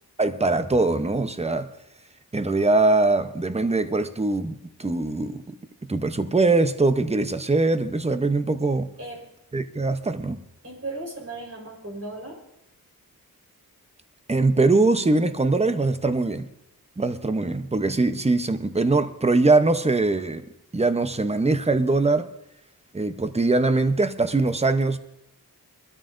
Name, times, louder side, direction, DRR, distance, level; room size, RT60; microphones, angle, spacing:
voice 1, 0.2-1.7 2.3-5.6 5.9-8.9 9.5-10.4 14.3-16.5 17.0-20.4 20.7-22.3 22.9-25.0, right 3 dB, 15° right, 0.7 m, -22 dB
voice 2, 10.6-12.4 17.2-17.6, right 2 dB, 40° right, 4.3 m, -36 dB
23.0 x 13.0 x 2.6 m
wide cardioid pair, 75°, 37 cm